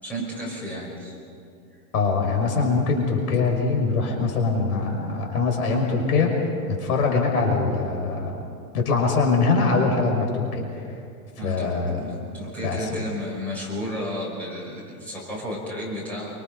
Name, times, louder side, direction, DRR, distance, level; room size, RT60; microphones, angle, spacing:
voice 1, 0.0-1.2 11.4-16.3, equal, 5° left, -6 dB, 5.8 m, -32 dB
voice 2, 1.9-6.4 6.7-8.4 8.7-10.8 11.4-12.1 12.6-13.0, left 4 dB, 65° left, 2 dB, 5.9 m, -23 dB
28.0 x 25.5 x 5.4 m, 2.6 s
supercardioid pair, 170°, 47 cm